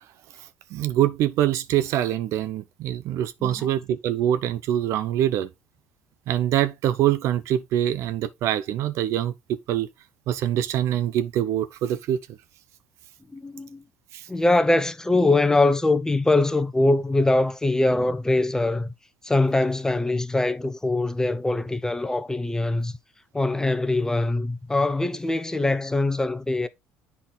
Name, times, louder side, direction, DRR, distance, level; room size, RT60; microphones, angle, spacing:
voice 1, 0.7-5.5 6.3-9.3 9.7-9.9 10.3-12.2 14.1-14.2, right 11 dB, 65° right, 0.6 m, -24 dB
voice 2, 3.4-3.8 13.3-13.8 14.3-18.9 19.2-22.9 23.3-26.7, left 2 dB, 10° left, 0.8 m, -23 dB
8.4 x 4.1 x 3.8 m
hypercardioid pair, 70°, 5 cm